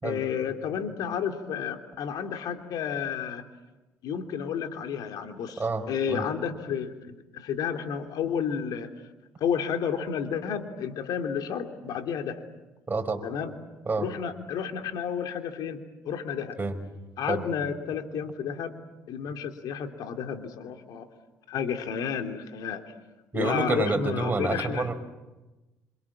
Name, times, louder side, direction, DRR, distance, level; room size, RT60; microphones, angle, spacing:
voice 1, 0.0-3.5 4.0-5.6 5.9-8.9 9.4-12.4 13.2-13.6 14.0-16.6 17.2-18.8 19.1-21.1 21.5-22.8 23.3-24.9, left 7 dB, 70° left, 6 dB, 3.0 m, -31 dB
voice 2, 5.6-6.2 12.9-13.2 13.9-14.1 16.6-16.8 17.3-17.4 23.3-24.9, right 3 dB, 25° right, 5 dB, 5.4 m, -28 dB
27.0 x 27.0 x 7.4 m, 1.1 s
supercardioid pair, 65°, 7 cm